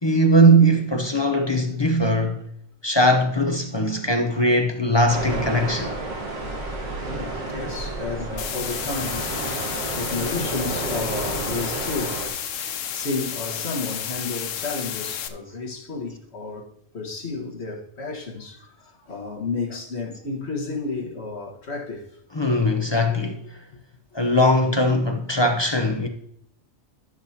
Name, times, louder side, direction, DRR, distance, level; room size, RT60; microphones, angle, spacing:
voice 1, 0.0-2.4 2.8-6.0 22.3-23.4 24.1-26.1, equal, 25° left, 0.7 m, -20 dB
sound 1, 5.1-12.3, right 2 dB, 80° right, 1.9 m, -31 dB
voice 2, 6.9-12.2 12.9-16.7 16.9-22.1, left 3 dB, 55° left, 1.9 m, -32 dB
sound 2, 8.4-15.3, left 9 dB, 75° left, 1.0 m, -31 dB
14.0 x 6.6 x 2.9 m
omnidirectional pair, 1.4 m